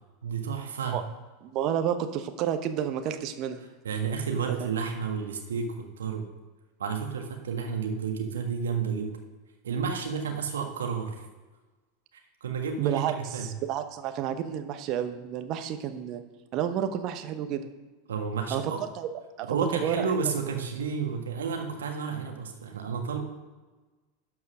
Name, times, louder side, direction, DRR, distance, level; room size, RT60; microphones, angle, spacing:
voice 1, 0.2-1.0 3.8-6.3 6.8-9.1 9.6-11.2 12.4-13.5 18.1-18.8 19.5-23.2, right 6 dB, 75° right, 3 dB, 1.5 m, -31 dB
voice 2, 1.4-3.6 4.6-4.7 12.8-16.2 16.5-17.7 18.5-19.1 19.4-20.1, right 9 dB, 45° right, 8 dB, 0.9 m, -30 dB
11.5 x 4.8 x 6.3 m, 1.3 s
figure-of-eight pair, 85°, 0 cm